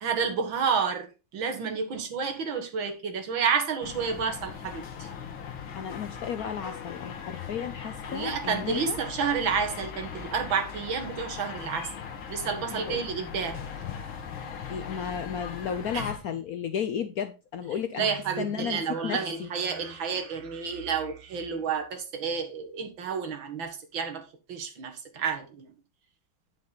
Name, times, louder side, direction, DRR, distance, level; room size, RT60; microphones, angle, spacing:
voice 1, 0.0-5.1 8.1-11.9 12.3-13.6 15.9-16.1 18.0-25.7, right 6 dB, 75° right, 2.3 m, -30 dB
sound 1, 3.8-16.2, left 7 dB, 85° left, 2.1 m, -39 dB
voice 2, 5.7-9.0 12.7-13.1 14.7-19.5, left 8 dB, 65° left, 0.9 m, -33 dB
9.0 x 6.3 x 4.0 m
omnidirectional pair, 2.2 m